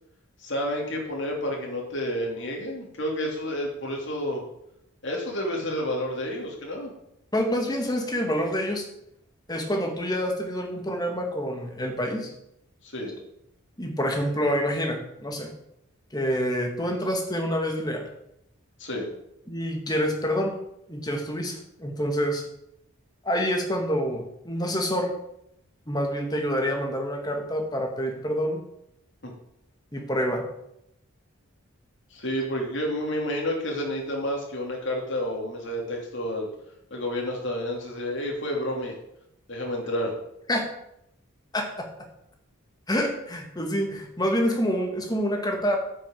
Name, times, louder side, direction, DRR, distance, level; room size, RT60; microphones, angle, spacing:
voice 1, 0.4-4.4 5.0-6.9 12.8-13.2 18.8-19.1 29.2-29.3 32.1-36.5 36.9-39.0 39.5-40.1, equal, 55° left, -1 dB, 2.9 m, -30 dB
voice 2, 7.3-8.8 9.5-12.3 13.8-15.5 16.1-18.1 19.5-20.6 20.9-22.4 23.2-25.1 25.9-28.6 29.9-30.4 40.5-40.7 41.5-41.9 42.9-45.8, equal, 20° left, 2 dB, 1.7 m, -27 dB
9.2 x 6.5 x 7.6 m, 0.79 s
head